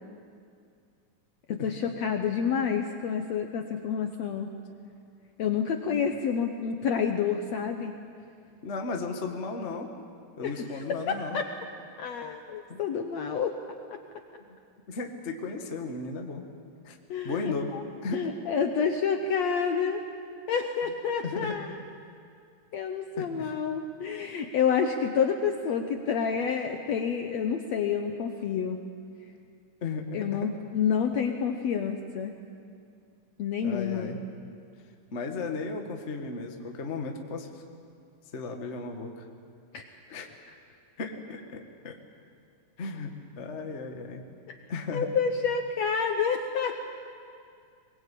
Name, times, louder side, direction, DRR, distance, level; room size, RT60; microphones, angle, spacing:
voice 1, 1.5-4.5 5.4-7.9 10.4-10.5 11.1-11.4 12.0-13.6 17.1-17.8 18.1-20.0 20.5-21.8 22.7-28.8 30.1-32.3 33.4-34.1 39.7-39.9 44.5-44.6 44.9-46.9, left 6 dB, 70° left, 5 dB, 1.7 m, -28 dB
voice 2, 8.6-9.9 10.4-11.4 12.7-12.8 14.9-16.4 16.8-17.0 17.2-17.7 18.0-18.3 21.2-21.6 23.2-23.5 29.8-30.5 33.6-34.2 35.1-37.5 38.3-39.2 40.1-40.3 41.0-42.0 42.8-44.2 44.7-45.1, left 4 dB, 45° left, 3 dB, 0.8 m, -35 dB
23.0 x 21.5 x 8.4 m, 2.4 s
omnidirectional pair, 4.2 m